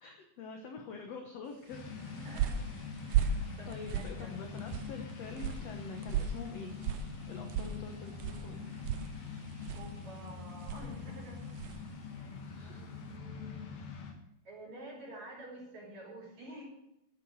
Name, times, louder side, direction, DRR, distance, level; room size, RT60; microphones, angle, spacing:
voice 1, 0.0-1.9 3.7-6.8 7.3-9.0 12.4-12.9, left 5 dB, 60° left, 4 dB, 1.9 m, -46 dB
sound 1, 1.7-14.1, left 5 dB, 80° left, 3.9 m, -44 dB
sound 2, 1.8-11.9, right 8 dB, 80° right, 2.4 m, -37 dB
voice 2, 2.0-2.6 3.1-4.3 9.7-11.7 12.1-13.7 14.4-16.6, right 1 dB, 50° right, -3 dB, 6.3 m, -50 dB
13.5 x 8.4 x 6.4 m, 0.83 s
omnidirectional pair, 4.1 m